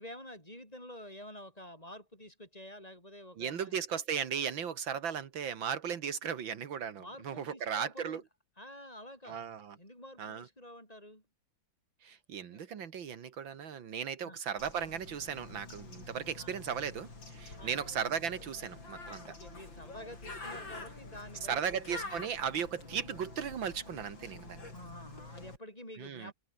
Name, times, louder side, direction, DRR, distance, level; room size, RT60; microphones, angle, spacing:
voice 1, 0.0-3.8 7.0-8.2 8.6-11.2 12.5-12.6 14.2-14.4 16.4-16.6 17.6-18.0 19.3-22.0 24.7-26.3, left 1 dB, 20° left, 7.1 m, -49 dB
voice 2, 3.4-8.2 9.3-9.8 10.2-10.5 12.0-19.2 21.5-24.7 26.0-26.3, right 7 dB, 75° right, 2.3 m, -36 dB
Bird, 14.6-25.6, left 3 dB, 70° left, 6.6 m, -47 dB
omnidirectional pair, 2.1 m